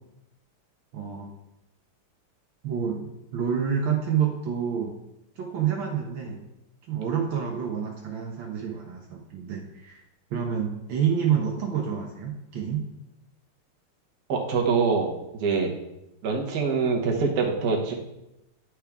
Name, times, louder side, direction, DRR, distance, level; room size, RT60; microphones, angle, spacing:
voice 1, 0.9-1.3 2.6-4.9 5.4-6.5 6.9-10.0 10.3-12.8, right 8 dB, 70° right, 0 dB, 1.5 m, -28 dB
voice 2, 14.3-15.7 16.2-17.9, right 5 dB, 55° right, 0 dB, 1.4 m, -24 dB
10.0 x 4.6 x 3.5 m, 0.90 s
omnidirectional pair, 2.4 m